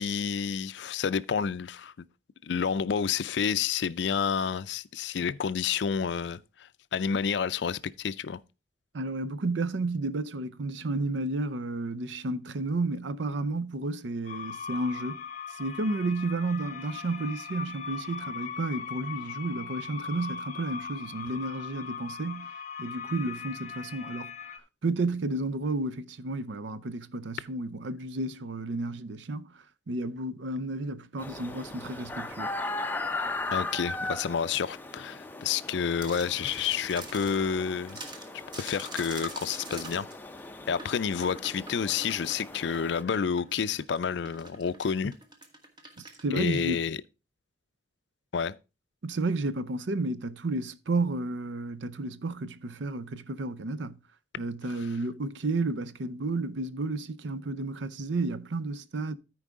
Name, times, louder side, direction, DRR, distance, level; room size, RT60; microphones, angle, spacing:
voice 1, 0.0-1.9 2.4-8.4 33.5-38.0 38.6-40.1 40.7-45.2 46.3-47.0 48.3-48.6, left 6 dB, 65° left, 0.4 m, -29 dB
voice 2, 8.9-15.2 15.5-22.5 22.8-32.5 46.0-46.8 49.0-54.0 54.4-59.1, right 2 dB, 75° right, 0.6 m, -32 dB
sound 1, 14.3-24.6, left 6 dB, 40° left, 0.7 m, -39 dB
sound 2, 31.2-43.0, left 2 dB, 10° left, 0.5 m, -38 dB
sound 3, 36.0-37.5 37.8-46.2, right 2 dB, 25° right, 1.3 m, -45 dB
13.5 x 4.7 x 3.6 m
head